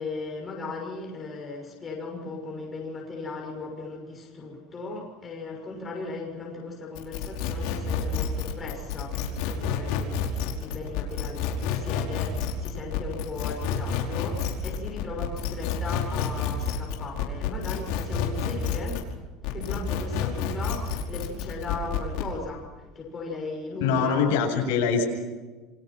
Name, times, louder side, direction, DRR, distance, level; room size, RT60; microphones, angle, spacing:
voice 1, 0.0-10.2 10.4-19.0 19.5-22.7 22.9-24.5, left 3 dB, 15° left, 0 dB, 6.3 m, -37 dB
sound 1, 6.9-19.1 19.4-22.3, left 7 dB, 65° left, 5.1 m, -29 dB
voice 2, 23.8-25.1, left 6 dB, 85° left, 2 dB, 8.0 m, -23 dB
28.5 x 25.0 x 6.0 m, 1.3 s
cardioid pair, 175°, 0 cm